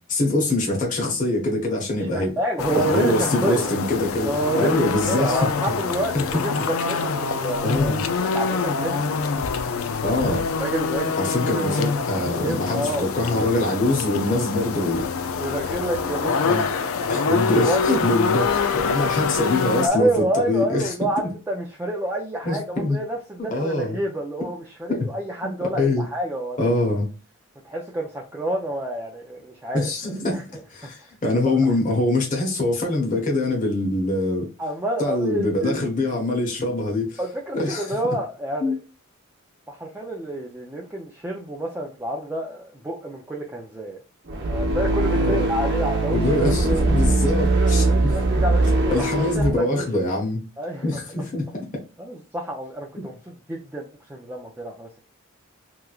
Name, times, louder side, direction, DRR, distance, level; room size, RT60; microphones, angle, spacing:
voice 1, 0.1-2.4 2.7-5.4 6.1-6.4 7.6-8.0 10.0-10.5 11.2-15.1 16.5-16.7 17.1-21.3 22.4-23.0 23.5-24.0 25.0-25.1 25.4-26.0 26.6-27.1 29.7-34.5 35.0-37.2 37.5-37.9 38.6-38.8 45.2-45.4 46.1-48.1 48.9-50.4 50.8-51.4 52.9-53.0, left 2 dB, 35° left, 1.0 m, -24 dB
voice 2, 2.0-3.7 4.2-6.1 6.4-8.0 8.3-9.0 10.6-11.8 12.1-13.1 14.2-14.3 15.4-16.6 17.1-18.0 19.8-26.7 27.6-29.8 30.3-30.4 30.8-30.9 31.5-31.8 34.6-35.8 37.2-38.8 39.7-44.0 44.3-47.0 47.5-49.9 50.6-51.2 52.0-55.0, right 1 dB, 10° right, 0.4 m, -28 dB
sound 1, 2.6-19.9, left 5 dB, 70° left, 0.4 m, -25 dB
sound 2, 44.3-49.5, right 2 dB, 55° right, 0.7 m, -21 dB
3.5 x 3.0 x 2.3 m
head